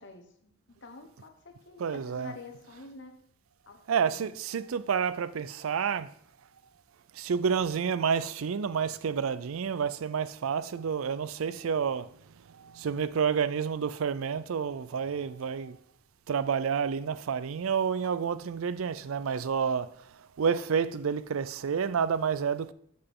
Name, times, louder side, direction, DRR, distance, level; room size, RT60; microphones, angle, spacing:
voice 1, 0.0-3.1 3.7-4.3, left 3 dB, 60° left, 1.1 m, -48 dB
voice 2, 1.8-2.3 3.9-6.1 7.1-15.8 16.3-22.7, right 6 dB, 80° right, 0.4 m, -29 dB
8.1 x 6.6 x 3.7 m
head